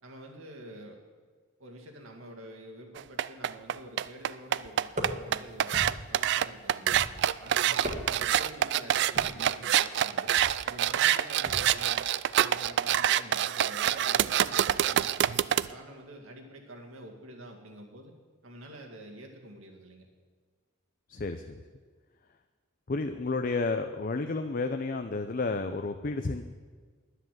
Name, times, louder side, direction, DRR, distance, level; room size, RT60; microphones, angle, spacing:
voice 1, 0.0-1.0 1.6-5.8 6.1-10.3 10.6-18.1 18.4-20.1, right 1 dB, 75° right, 2 dB, 2.1 m, -48 dB
sound 1, 3.0-15.7, right 11 dB, 55° right, 0.3 m, -26 dB
sound 2, 4.9-5.4 5.7-6.2 6.9-7.4 7.7-8.4 9.1-9.5 10.4-10.6 11.5-11.8, equal, 35° right, 1.6 m, -37 dB
voice 2, 21.1-21.6 22.9-26.4, left 3 dB, 45° left, 7 dB, 0.6 m, -31 dB
10.5 x 10.0 x 7.6 m, 1.5 s
head